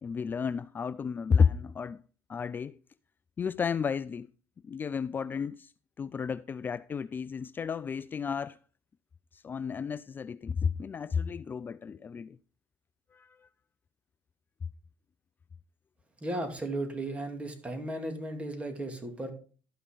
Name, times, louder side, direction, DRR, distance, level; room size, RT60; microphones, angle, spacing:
voice 1, 0.0-2.0 2.3-2.8 3.4-4.3 4.6-5.7 6.0-8.6 9.3-12.4 13.1-13.4, left 6 dB, 30° left, 0.3 m, -32 dB
voice 2, 16.2-19.3, right 1 dB, 20° right, 2.5 m, -35 dB
12.5 x 5.7 x 5.0 m
supercardioid pair, 90°, 6 cm